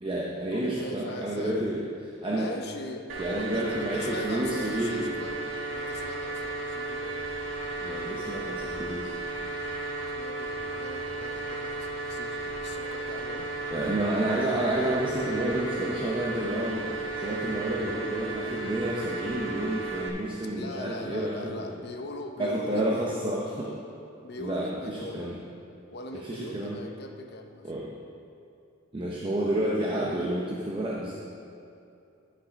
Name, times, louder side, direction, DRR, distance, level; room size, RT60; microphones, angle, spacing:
voice 1, 0.0-1.9 2.2-2.5 3.2-5.1 7.8-9.2 13.7-21.7 22.4-23.7 24.4-25.4 26.2-26.8 27.6-27.9 28.9-31.1, right 1 dB, 25° right, -4 dB, 0.8 m, -30 dB
voice 2, 0.5-1.7 2.3-5.4 5.7-7.2 10.1-13.5 20.5-23.3 24.2-25.2 25.9-27.8, left 2 dB, 55° left, 4 dB, 0.8 m, -40 dB
sound 1, 3.1-20.1, right 2 dB, 75° right, 1.2 m, -34 dB
10.5 x 5.9 x 5.1 m, 2.6 s
head